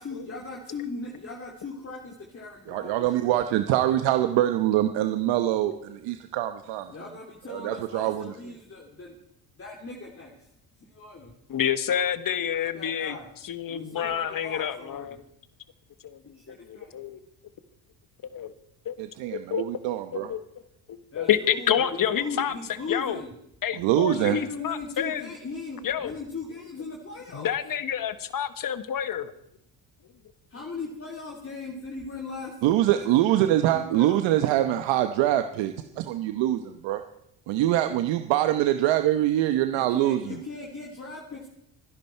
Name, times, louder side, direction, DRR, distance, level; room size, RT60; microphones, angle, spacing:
voice 1, 0.0-3.4 3.8-4.0 6.9-9.1 9.5-10.5 10.9-11.3 12.5-13.3 13.7-15.2 16.3-16.9 21.1-23.3 24.1-27.5 30.5-34.4 39.7-41.5, left 3 dB, 30° left, 0 dB, 3.0 m, -39 dB
voice 2, 2.7-6.9 7.5-8.3 19.0-20.3 23.8-24.4 32.6-37.0 37.5-40.4, right 13 dB, 75° right, 8 dB, 1.1 m, -24 dB
voice 3, 11.5-13.2 13.4-15.2 16.0-17.2 18.3-18.5 18.8-18.9 19.3-19.6 20.1-20.4 20.9-22.5 22.9-23.2 23.6-25.3 25.8-26.1 27.3-29.3, left 9 dB, 45° left, 12 dB, 1.4 m, -28 dB
26.0 x 11.0 x 4.5 m, 0.76 s
supercardioid pair, 70°, 45 cm